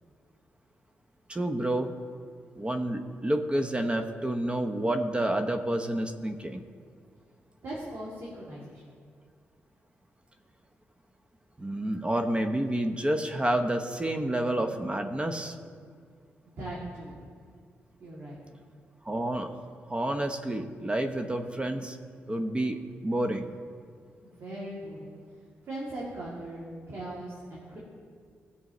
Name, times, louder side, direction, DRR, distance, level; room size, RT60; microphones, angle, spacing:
voice 1, 1.3-1.9 2.6-6.6 11.6-15.6 19.0-19.5 19.9-22.0 22.3-23.5, right 1 dB, 20° right, 6 dB, 0.9 m, -29 dB
voice 2, 7.6-8.8 16.4-17.3 18.0-18.4 24.2-25.1 25.6-27.8, right 1 dB, 60° right, -6 dB, 2.6 m, -39 dB
17.0 x 7.0 x 3.1 m, 2.1 s
cardioid pair, 70°, 5 cm